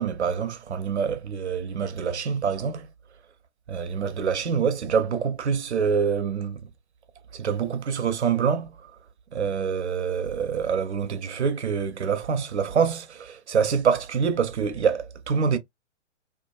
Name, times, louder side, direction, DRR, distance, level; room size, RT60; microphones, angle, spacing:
voice 1, 0.0-2.9 3.7-6.7 7.3-8.9 9.3-15.6, right 6 dB, 60° right, 0.6 m, -26 dB
2.5 x 2.3 x 2.2 m
figure-of-eight pair, 115°, 38 cm